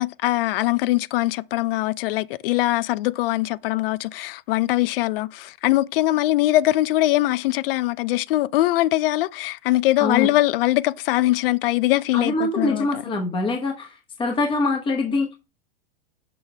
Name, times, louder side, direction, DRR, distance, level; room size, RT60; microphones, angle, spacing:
voice 1, 0.0-13.2, left 17 dB, 65° left, 0.5 m, -22 dB
voice 2, 10.0-10.3 12.1-13.9 14.2-15.3, left 3 dB, 15° left, 1.0 m, -24 dB
6.2 x 5.6 x 3.4 m
supercardioid pair, 125°, 30 cm